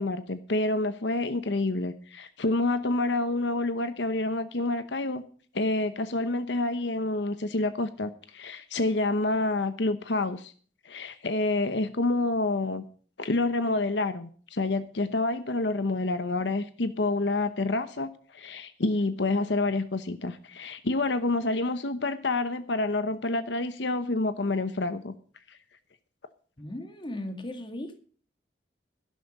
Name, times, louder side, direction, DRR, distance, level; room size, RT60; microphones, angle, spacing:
voice 1, 0.0-5.2 5.5-10.5 10.8-12.8 13.2-25.1 25.5-25.6, left 2 dB, 75° left, 11 dB, 0.9 m, -28 dB
voice 2, 26.6-28.0, left 1 dB, 25° left, 7 dB, 1.9 m, -37 dB
12.0 x 11.5 x 5.3 m, 0.43 s
head